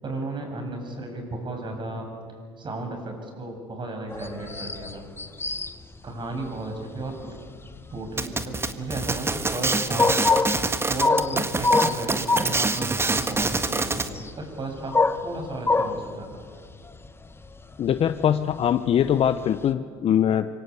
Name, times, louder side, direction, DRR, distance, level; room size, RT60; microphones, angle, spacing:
voice 1, 0.0-2.1 2.6-5.0 6.0-7.4 7.9-10.2 10.8-14.0 14.4-14.9 15.2-16.5, right 2 dB, 35° right, 4 dB, 7.5 m, -34 dB
sound 1, 4.1-19.7, left 3 dB, 20° left, 1.5 m, -26 dB
sound 2, 8.2-14.1, right 3 dB, 20° right, 1.7 m, -26 dB
voice 2, 17.8-20.5, left 9 dB, 45° left, 10 dB, 0.9 m, -22 dB
26.0 x 24.0 x 8.3 m, 2.1 s
hypercardioid pair, 70°, 13 cm